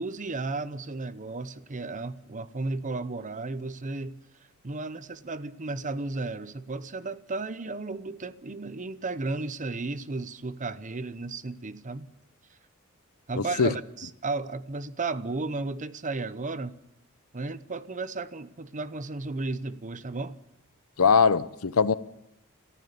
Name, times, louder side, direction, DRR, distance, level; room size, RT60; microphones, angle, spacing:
voice 1, 0.0-4.2 4.6-12.1 13.3-16.8 17.3-20.4, right 3 dB, 35° right, 0.8 m, -34 dB
voice 2, 13.4-13.7 21.0-21.9, left 5 dB, 90° left, 0.8 m, -21 dB
27.5 x 14.5 x 6.9 m
head